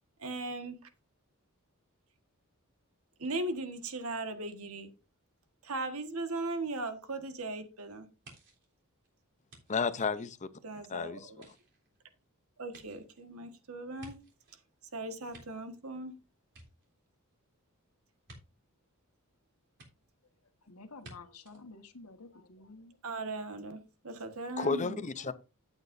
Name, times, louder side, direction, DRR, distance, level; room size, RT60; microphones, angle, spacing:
voice 1, 0.2-0.8 3.2-4.9 5.6-8.1 10.6-11.5 12.6-14.2 14.9-16.1 23.0-25.0, right 2 dB, 75° right, 1.6 m, -38 dB
sound 1, 8.2-10.8 11.3-14.6 15.0-16.1 16.4-17.3 18.2-18.4 19.8-19.9 21.0-21.1 21.5-21.6, right 1 dB, 55° right, 3.6 m, -56 dB
voice 2, 9.7-10.5 10.9-11.3 24.6-25.3, left 5 dB, 35° left, 0.7 m, -32 dB
voice 3, 20.6-23.0, left 3 dB, 85° left, 1.5 m, -51 dB
12.0 x 8.8 x 2.7 m
head